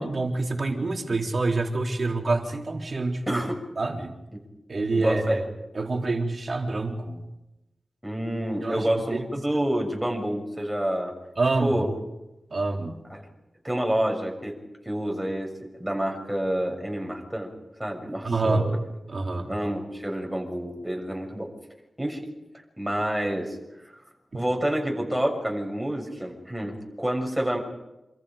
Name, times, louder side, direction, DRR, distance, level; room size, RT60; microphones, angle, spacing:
voice 1, 0.0-3.4 3.8-4.1 4.7-5.4 5.7-7.2 8.6-9.2 11.4-11.8 12.5-13.0 18.2-18.7 19.1-19.5, right 3 dB, 45° right, 1 dB, 4.0 m, -27 dB
voice 2, 3.3-3.6 4.3-4.4 5.0-5.4 8.0-11.1 11.6-11.9 13.1-13.3 13.6-14.5 14.8-15.5 15.8-17.5 17.8-18.8 19.4-21.5 22.0-22.2 22.8-23.6 23.9-24.0 24.3-27.6, right 1 dB, 5° right, 1 dB, 6.6 m, -28 dB
28.0 x 27.0 x 5.3 m, 0.95 s
wide cardioid pair, 115°, 0 cm